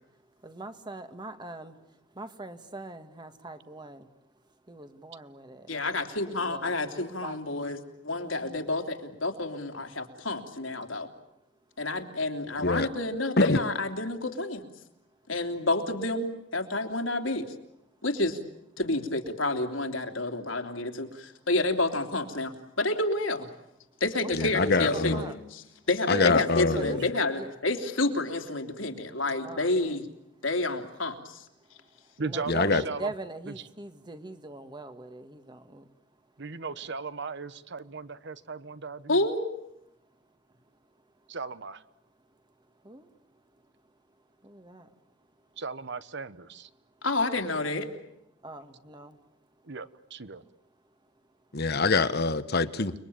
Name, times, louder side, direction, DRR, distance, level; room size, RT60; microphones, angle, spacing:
voice 1, 0.4-1.7 2.2-4.1 4.7-5.7 6.3-7.4 8.1-8.7 24.2-25.4 26.1-26.5 26.8-27.0 27.3-27.5 29.4-30.0 32.2-35.8 42.9-43.0 44.4-44.9 48.4-49.1, right 2 dB, 25° right, 8 dB, 1.8 m, -41 dB
voice 2, 5.7-7.8 8.0-11.1 11.8-14.7 15.3-17.4 18.0-18.4 18.8-23.5 24.0-30.1 30.4-31.4 39.1-39.4 47.0-47.9, left 2 dB, 80° left, 5 dB, 3.2 m, -29 dB
voice 3, 24.3-25.2 26.1-27.0 32.5-32.8 51.5-52.9, left 3 dB, 55° left, 12 dB, 1.3 m, -24 dB
voice 4, 32.2-33.1 33.5-33.6 36.4-39.2 41.3-41.8 45.6-46.7 49.6-50.4, right 4 dB, 65° right, 14 dB, 1.1 m, -37 dB
30.0 x 22.0 x 8.8 m, 0.81 s
head